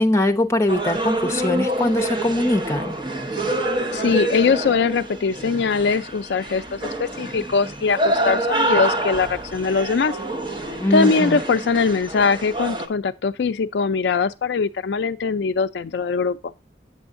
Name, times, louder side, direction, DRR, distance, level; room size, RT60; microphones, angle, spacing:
voice 1, 0.0-3.0 10.8-11.4, left 1 dB, 15° left, 0.8 m, -21 dB
sound 1, 0.7-12.9, right 1 dB, 25° right, 0.9 m, -26 dB
voice 2, 3.9-10.2 10.9-16.5, left 5 dB, 70° left, 0.4 m, -21 dB
8.3 x 7.0 x 2.5 m
head